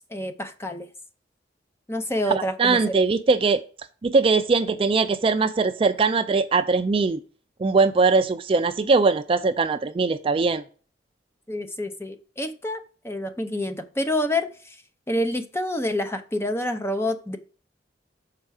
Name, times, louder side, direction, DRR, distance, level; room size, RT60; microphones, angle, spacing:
voice 1, 0.1-0.9 1.9-3.0 11.5-14.7 15.1-17.4, left 1 dB, 15° left, 0.7 m, -28 dB
voice 2, 2.3-3.6 4.0-7.2 7.6-10.6, right 4 dB, 30° right, 0.4 m, -21 dB
6.6 x 4.4 x 4.8 m
head